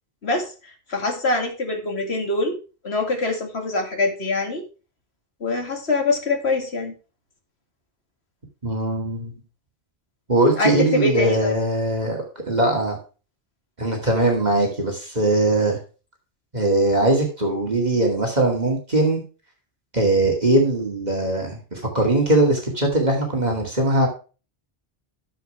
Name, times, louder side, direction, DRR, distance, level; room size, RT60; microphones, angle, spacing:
voice 1, 0.2-2.6 2.8-4.6 5.4-6.9 10.6-11.6, left 2 dB, 75° left, 4 dB, 2.5 m, -24 dB
voice 2, 8.6-9.4 10.3-13.0 13.8-15.8 16.5-19.2 19.9-24.1, right 2 dB, 40° right, 0 dB, 2.4 m, -21 dB
13.0 x 7.3 x 3.3 m, 0.34 s
omnidirectional pair, 1.1 m